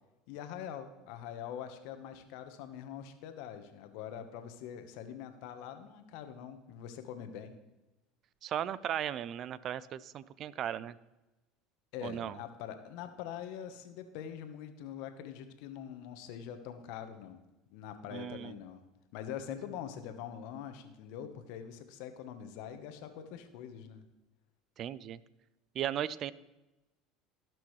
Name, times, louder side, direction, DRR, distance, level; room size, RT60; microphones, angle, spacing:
voice 1, 0.3-7.6 11.9-17.4 17.7-18.8 19.1-24.0, left 9 dB, 70° left, 8 dB, 1.1 m, -44 dB
voice 2, 8.4-10.9 12.0-12.4 18.1-18.5 24.8-25.2 25.7-26.3, right 10 dB, 50° right, 18 dB, 0.4 m, -36 dB
17.0 x 6.1 x 3.2 m, 1.0 s
hypercardioid pair, 85°, 0 cm